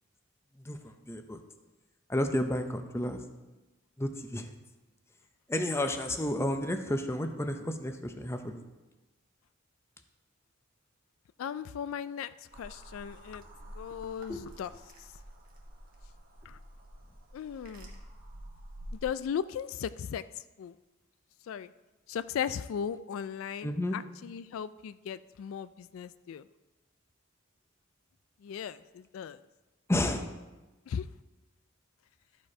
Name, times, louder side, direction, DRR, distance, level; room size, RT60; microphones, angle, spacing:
voice 1, 0.7-1.4 2.1-3.2 4.0-4.5 5.5-8.7 14.3-14.4 23.6-24.0 29.9-30.3, left 1 dB, 15° left, 6 dB, 0.6 m, -31 dB
voice 2, 11.4-13.4 13.7-14.7 16.5-16.6 17.3-18.0 19.0-20.7 21.5-21.7 22.1-26.5 28.4-29.4 30.9-31.0, left 8 dB, 80° left, 15 dB, 0.3 m, -37 dB
sound 1, 12.5-19.0, right 1 dB, 45° right, 1.4 m, -49 dB
13.0 x 5.1 x 4.8 m, 1.1 s
head